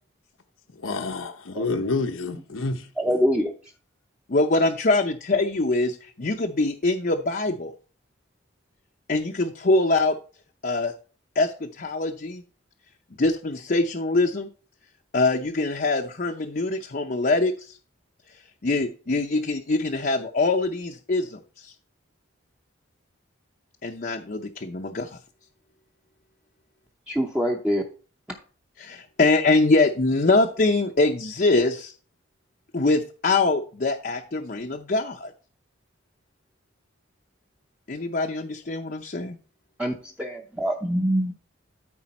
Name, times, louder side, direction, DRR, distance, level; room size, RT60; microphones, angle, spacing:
voice 1, 0.7-2.9, left 3 dB, 80° left, 1.0 m, -28 dB
voice 2, 3.0-3.5 27.1-27.8 39.8-41.3, equal, 5° right, 0.7 m, -24 dB
voice 3, 4.3-7.7 9.1-10.2 10.6-10.9 11.4-12.4 13.2-14.5 15.1-17.8 18.6-21.7 23.8-25.2 28.8-31.9 32.7-35.3 37.9-39.4, left 2 dB, 45° left, 0.6 m, -23 dB
13.0 x 4.9 x 4.2 m
head